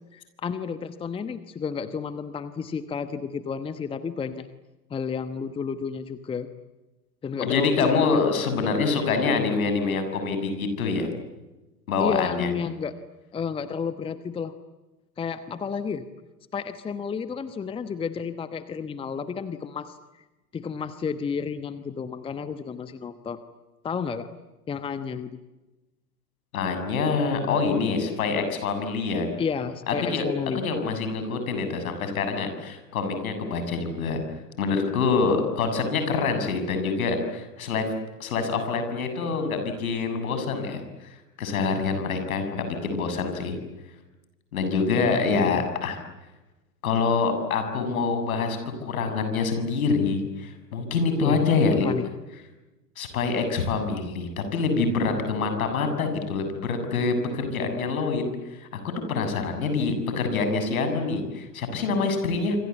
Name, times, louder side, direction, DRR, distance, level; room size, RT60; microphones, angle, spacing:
voice 1, 0.1-4.5 4.9-6.5 7.2-8.3 9.0-9.4 12.0-12.9 13.3-14.5 15.2-16.0 16.5-20.0 20.5-23.4 23.8-24.3 24.7-25.3 29.4-30.6 44.9-45.6 51.2-51.4 51.7-52.1, left 6 dB, 10° left, 12 dB, 1.1 m, -31 dB
voice 2, 7.4-11.1 11.9-12.5 26.5-29.3 29.9-30.3 30.5-34.2 34.6-37.8 38.2-43.6 44.5-46.0 46.8-51.9 53.0-62.6, left 4 dB, 60° left, 7 dB, 7.4 m, -26 dB
27.0 x 26.5 x 8.4 m, 1.1 s
figure-of-eight pair, 100°, 48 cm